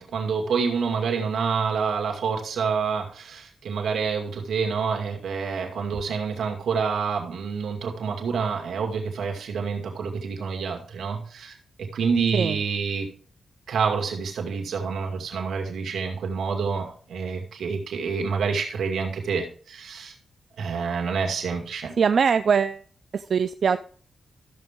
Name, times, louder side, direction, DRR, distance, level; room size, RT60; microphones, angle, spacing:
voice 1, 0.0-13.1 13.7-20.1 20.6-21.9, right 5 dB, 90° right, 2 dB, 2.3 m, -27 dB
voice 2, 22.0-22.8 23.1-23.8, right 6 dB, 65° right, 11 dB, 0.4 m, -22 dB
13.5 x 7.0 x 3.7 m, 0.44 s
cardioid pair, 85°, 0 cm